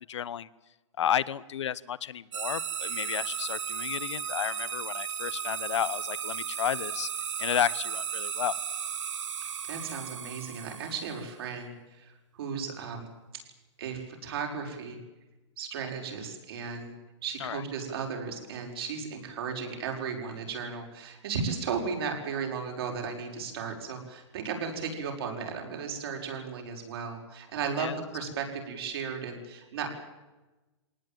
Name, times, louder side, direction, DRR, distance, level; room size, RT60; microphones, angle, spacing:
voice 1, 0.1-0.5 1.0-7.1 7.4-8.6 17.4-17.6 27.8-28.0, left 9 dB, 70° left, 19 dB, 1.1 m, -32 dB
sound 1, 2.3-11.3, right 8 dB, 80° right, 1.8 m, -35 dB
voice 2, 9.6-13.1 13.8-15.0 15.6-16.9 17.2-29.9, right 6 dB, 55° right, 2 dB, 5.7 m, -35 dB
22.0 x 19.0 x 9.1 m, 1.1 s
hypercardioid pair, 165°, 15 cm